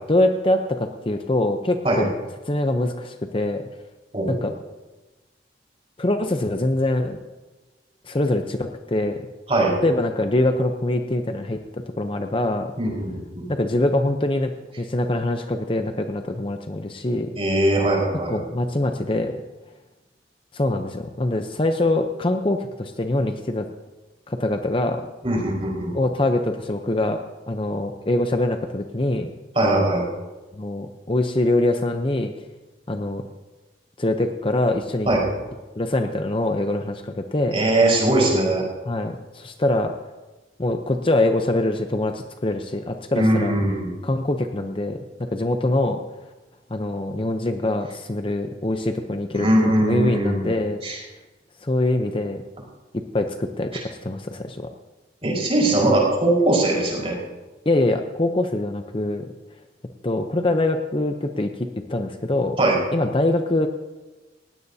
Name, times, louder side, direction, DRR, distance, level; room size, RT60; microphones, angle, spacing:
voice 1, 0.1-2.1 2.4-3.6 4.3-4.5 6.0-7.2 8.1-9.2 9.8-11.6 12.0-12.7 13.5-14.5 14.8-17.3 18.3-19.4 20.5-23.7 24.3-25.0 25.9-27.2 27.5-29.3 30.6-32.3 32.9-33.2 34.0-35.1 35.8-37.6 38.9-39.9 40.6-43.5 44.0-46.0 46.7-51.0 51.6-52.4 52.9-54.7 57.7-59.3 60.0-62.6 62.9-63.7, left 1 dB, 30° left, 6 dB, 0.7 m, -24 dB
voice 2, 12.8-13.5 17.3-18.4 25.2-25.9 29.5-30.0 35.1-35.2 37.5-38.6 43.1-43.9 49.3-50.5 50.8-51.0 55.2-57.2 62.6-62.8, right 1 dB, 30° right, -2 dB, 4.7 m, -20 dB
19.5 x 16.5 x 2.8 m, 1.2 s
head